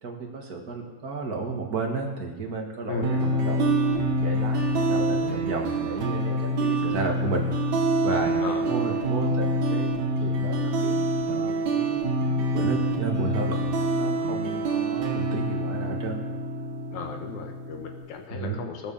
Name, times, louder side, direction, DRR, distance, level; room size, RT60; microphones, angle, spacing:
voice 1, 0.0-3.7 4.2-7.5 8.0-8.3 8.6-9.9 10.2-12.0 12.5-16.2 18.3-18.6, right 4 dB, 35° right, 1 dB, 1.8 m, -33 dB
voice 2, 2.9-3.3 5.9-6.1 6.8-7.1 8.4-9.0 16.9-18.9, left 5 dB, 75° left, 4 dB, 2.6 m, -36 dB
sound 1, 3.0-18.0, right 1 dB, 70° right, 3.2 m, -26 dB
18.5 x 7.2 x 7.2 m, 1.2 s
omnidirectional pair, 3.4 m